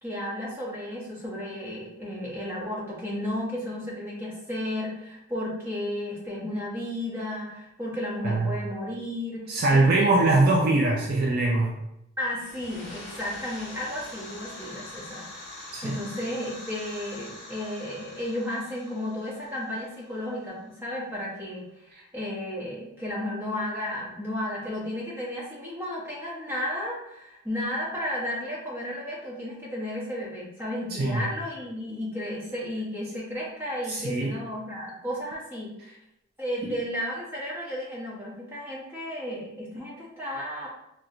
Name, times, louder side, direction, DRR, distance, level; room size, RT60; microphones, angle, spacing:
voice 1, 0.0-10.3 12.2-35.9 36.4-40.7, left 1 dB, 10° right, -6 dB, 0.8 m, -33 dB
voice 2, 9.5-11.8 15.7-16.0 30.9-31.2 33.9-34.3 36.6-36.7, right 2 dB, 45° right, -1 dB, 0.3 m, -22 dB
sound 1, 12.3-20.9, left 1 dB, 55° left, 1.0 m, -44 dB
4.1 x 2.1 x 2.5 m, 0.85 s
head